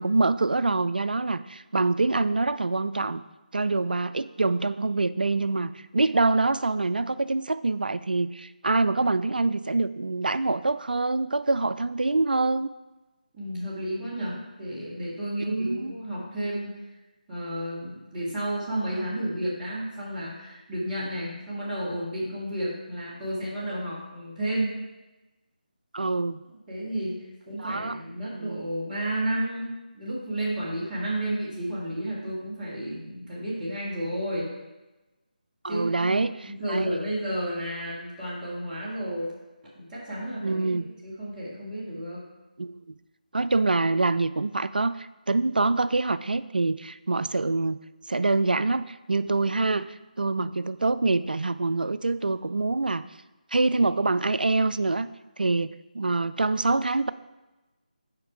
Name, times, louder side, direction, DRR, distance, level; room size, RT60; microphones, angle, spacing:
voice 1, 0.0-3.2 3.5-12.7 15.4-15.9 25.9-26.4 27.6-28.0 28.3-28.7 35.6-36.9 40.4-40.9 42.6-42.8 43.3-47.8 48.1-53.0 53.5-55.1 55.4-57.1, right 3 dB, 75° right, 15 dB, 0.4 m, -25 dB
voice 2, 13.3-16.8 17.3-24.7 26.7-34.5 35.7-39.3 39.7-42.2, right 1 dB, 10° right, -11 dB, 1.8 m, -32 dB
6.5 x 5.2 x 4.9 m, 1.1 s
figure-of-eight pair, 155°, 5 cm